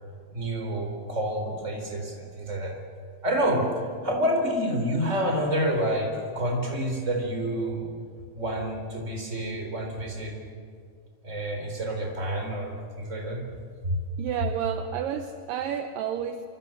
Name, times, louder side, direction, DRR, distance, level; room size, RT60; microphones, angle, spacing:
voice 1, 0.3-2.7 3.2-3.7 4.0-7.9 8.3-10.4 11.2-13.5 13.8-14.0, equal, 20° right, 3 dB, 4.1 m, -28 dB
voice 2, 14.2-16.5, right 8 dB, 75° right, 7 dB, 2.4 m, -30 dB
26.0 x 26.0 x 7.7 m, 2.2 s
omnidirectional pair, 4.3 m